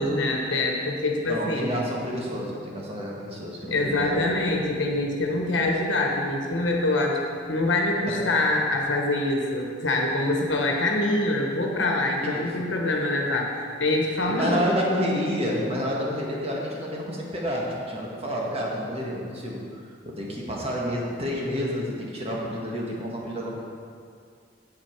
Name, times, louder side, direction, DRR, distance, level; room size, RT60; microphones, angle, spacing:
voice 1, 0.0-1.8 3.7-7.2 7.5-14.7, left 2 dB, 80° left, 0 dB, 1.2 m, -25 dB
voice 2, 1.2-4.3 8.1-8.3 12.2-12.5 14.3-23.5, equal, 35° right, -3 dB, 1.5 m, -29 dB
7.9 x 7.9 x 4.6 m, 2.3 s
head